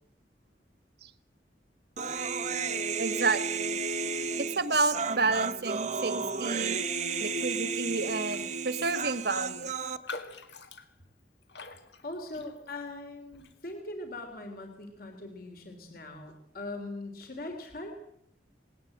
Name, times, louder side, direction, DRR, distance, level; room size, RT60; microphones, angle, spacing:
Human voice, 2.0-10.0, right 5 dB, 40° right, 1.1 m, -32 dB
voice 1, 3.0-3.8 4.4-6.7 7.2-9.7, right 3 dB, 65° right, 12 dB, 1.4 m, -30 dB
Raindrop, 8.2-8.5 8.8-8.9 9.3-12.9 13.3-13.6, left 3 dB, 80° left, 2.0 m, -45 dB
voice 2, 12.0-18.0, left 2 dB, 55° left, 4 dB, 3.2 m, -41 dB
19.5 x 18.5 x 7.9 m, 0.71 s
head